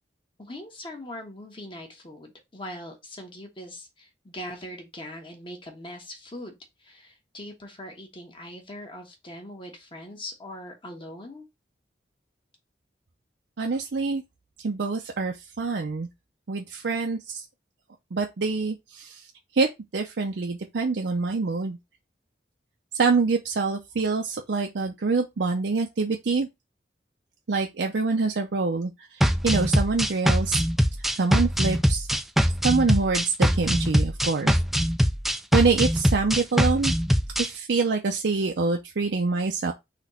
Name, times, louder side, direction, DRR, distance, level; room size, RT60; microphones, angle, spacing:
voice 1, 0.4-11.4, left 1 dB, 30° left, 1.3 m, -41 dB
voice 2, 13.6-14.2 14.6-16.1 16.5-17.4 18.1-19.2 19.5-21.8 22.9-26.5 27.5-28.9 29.4-30.6 31.2-32.1 32.6-34.5 35.5-36.9 37.4-39.7, right 4 dB, 70° right, 0.5 m, -25 dB
sound 1, 29.2-37.5, equal, ahead, 0.3 m, -22 dB
4.1 x 3.0 x 4.2 m
head